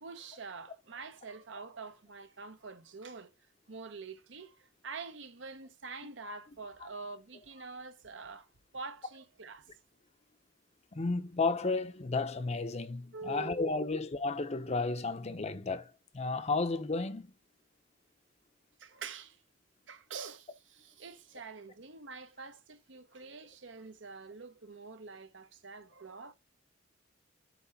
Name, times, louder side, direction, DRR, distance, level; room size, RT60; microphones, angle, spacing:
voice 1, 0.0-3.3 3.7-9.7 13.1-13.7 18.8-19.4 19.9-26.3, right 4 dB, 70° right, 0.9 m, -46 dB
voice 2, 10.9-17.3, left 3 dB, 35° left, 0.7 m, -33 dB
8.2 x 3.2 x 5.8 m
head